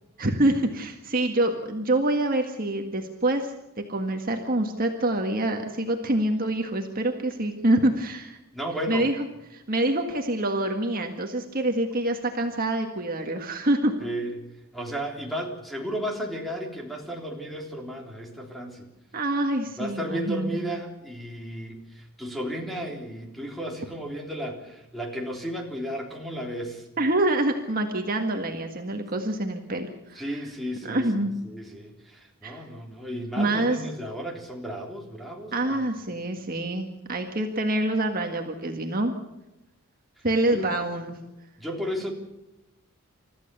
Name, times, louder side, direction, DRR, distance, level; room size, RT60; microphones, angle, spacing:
voice 1, 0.2-3.5 3.8-8.4 8.9-9.3 9.5-13.9 19.1-20.6 27.0-30.2 30.8-31.3 32.4-32.6 33.4-33.8 35.5-39.2 40.2-41.2, right 1 dB, 40° right, 3 dB, 1.8 m, -26 dB
voice 2, 8.5-9.1 14.0-14.4 14.7-18.9 19.8-26.9 30.1-31.1 31.4-35.8 40.5-40.7 41.6-42.1, equal, ahead, 1 dB, 3.5 m, -34 dB
29.5 x 14.5 x 6.9 m, 0.96 s
head